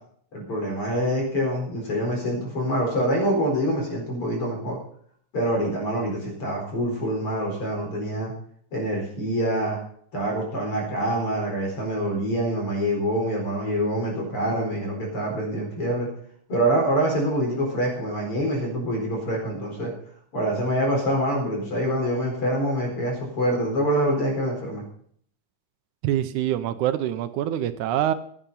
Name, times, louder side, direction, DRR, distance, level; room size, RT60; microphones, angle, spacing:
voice 1, 0.3-4.8 5.3-8.3 8.7-9.8 10.1-16.1 16.5-19.9 20.3-24.8, right 1 dB, 45° left, 0 dB, 5.2 m, -25 dB
voice 2, 26.0-28.1, right 12 dB, 80° right, 11 dB, 2.1 m, -25 dB
16.0 x 8.9 x 5.5 m, 0.62 s
omnidirectional pair, 3.6 m